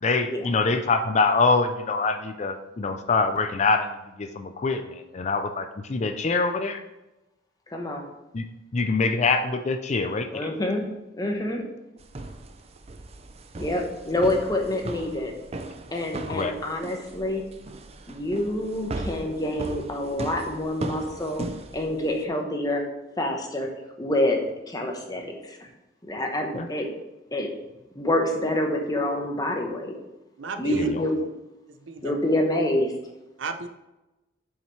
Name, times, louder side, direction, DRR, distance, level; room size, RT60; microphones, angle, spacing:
voice 1, 0.0-6.8 8.3-8.5 8.7-10.3 16.3-16.5 26.5-26.7 30.7-31.0, left 3 dB, 35° left, 8 dB, 0.4 m, -24 dB
voice 2, 7.7-8.0 10.3-10.8 11.1-11.6 13.6-15.3 15.9-17.4 18.1-21.5 21.7-22.9 23.2-23.7 24.0-24.4 24.7-25.7 26.1-26.9 27.3-27.5 27.9-30.0 30.6-31.1 32.0-32.9, left 1 dB, 20° left, 2 dB, 1.0 m, -27 dB
sound 1, 12.0-22.2, right 2 dB, 30° right, 0.5 m, -38 dB
voice 3, 30.4-30.9 31.7-32.2 33.4-33.7, right 5 dB, 75° right, 8 dB, 0.6 m, -33 dB
7.3 x 5.7 x 3.2 m, 0.98 s
head